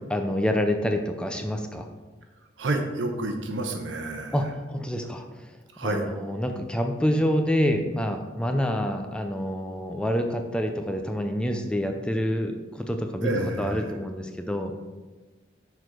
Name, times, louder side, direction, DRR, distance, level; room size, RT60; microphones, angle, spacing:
voice 1, 0.1-1.9 4.3-5.2 5.8-13.3 13.6-14.7, equal, 5° left, 5 dB, 0.4 m, -27 dB
voice 2, 2.6-4.5 5.7-6.0 13.2-13.9, right 2 dB, 90° right, 4 dB, 1.0 m, -29 dB
6.1 x 4.6 x 4.9 m, 1.2 s
head